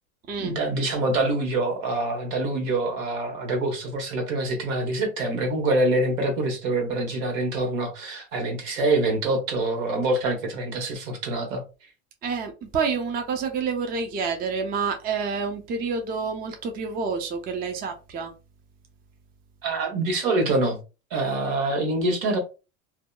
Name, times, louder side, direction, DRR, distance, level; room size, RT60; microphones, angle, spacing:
voice 1, 0.4-11.6 19.6-20.8 21.1-22.4, right 2 dB, 75° right, 1.2 m, -25 dB
voice 2, 12.2-18.3, right 5 dB, 25° right, 0.5 m, -28 dB
2.7 x 2.2 x 2.2 m
supercardioid pair, 110°, 40 cm